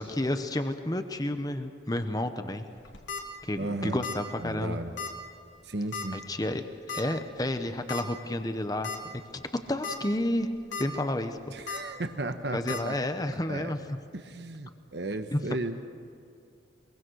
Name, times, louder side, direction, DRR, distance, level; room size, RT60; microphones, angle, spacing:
voice 1, 0.0-2.6 3.4-4.8 6.1-8.9 9.3-10.5 10.8-11.4 12.5-14.0 15.3-15.4, left 1 dB, 20° left, 8 dB, 0.9 m, -31 dB
sound 1, 2.8-3.2 4.0-4.3 4.5-4.6 5.0-5.1 5.9-6.2 6.9-7.0 7.9-8.0 8.5-8.6 8.8-9.0 9.6-10.0 10.4-10.8 11.7-11.8 12.7-12.8, left 5 dB, 85° left, 2.3 m, -35 dB
voice 2, 3.6-4.0 4.4-4.9 5.7-6.2 11.5-12.9 13.5-13.8 14.1-15.9, right 2 dB, 65° right, 8 dB, 1.2 m, -35 dB
23.0 x 23.0 x 6.3 m, 2.4 s
head